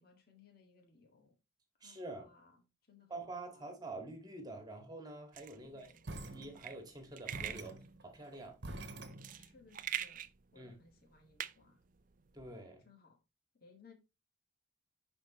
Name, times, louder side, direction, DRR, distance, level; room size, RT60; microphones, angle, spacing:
voice 1, 0.0-1.4 1.8-2.6 2.9-3.7 5.6-6.0 9.3-11.8 12.8-13.2 13.6-13.9, left 5 dB, 50° left, 1.8 m, -63 dB
voice 2, 1.8-2.3 3.1-5.9 6.3-8.6 10.6-10.8 12.3-12.8, right 2 dB, 20° right, 1.8 m, -47 dB
sound 1, 5.3-12.5, right 11 dB, 40° right, 0.4 m, -45 dB
sound 2, 6.0-6.9 7.3-9.7, right 2 dB, 60° right, 1.2 m, -47 dB
10.5 x 4.5 x 3.0 m
head